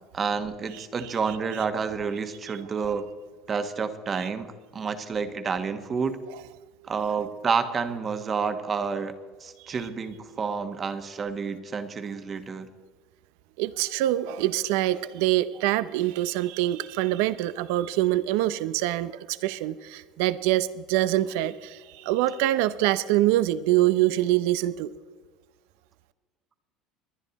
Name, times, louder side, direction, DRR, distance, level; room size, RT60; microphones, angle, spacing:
voice 1, 0.1-3.1 3.5-6.2 6.9-9.1 9.4-12.7, right 5 dB, 30° right, 9 dB, 1.3 m, -29 dB
voice 2, 13.6-24.9, right 14 dB, 75° right, 15 dB, 0.6 m, -25 dB
22.5 x 10.0 x 4.1 m, 1.5 s
supercardioid pair, 110°, 0 cm